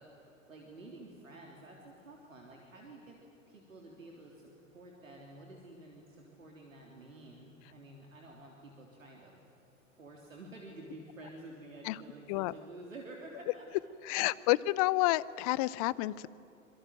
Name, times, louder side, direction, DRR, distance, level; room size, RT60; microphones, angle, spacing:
voice 1, 0.0-3.2 3.5-9.3 10.0-13.7 14.2-14.6, right 2 dB, 75° right, 0 dB, 3.6 m, -51 dB
voice 2, 14.0-16.3, left 18 dB, 30° left, 21 dB, 0.5 m, -29 dB
26.0 x 22.5 x 9.2 m, 2.9 s
figure-of-eight pair, 100°, 40 cm